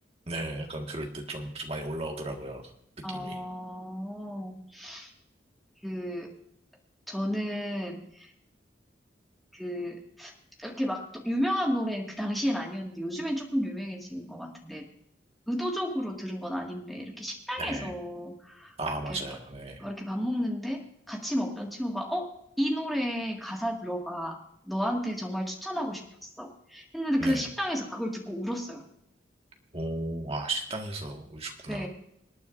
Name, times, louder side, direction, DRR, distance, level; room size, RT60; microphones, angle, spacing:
voice 1, 0.3-2.6 3.1-3.4 17.6-17.9 18.8-19.8 27.2-27.4 29.7-31.9, right 2 dB, 35° right, 2 dB, 1.7 m, -35 dB
voice 2, 3.0-5.1 5.8-6.3 7.1-8.3 9.5-10.3 10.6-14.9 15.5-18.7 19.1-19.2 19.8-20.8 21.1-24.4 24.6-26.0 26.4-28.8 31.7-31.9, equal, ahead, -1 dB, 1.9 m, -32 dB
26.5 x 9.3 x 2.6 m, 0.74 s
head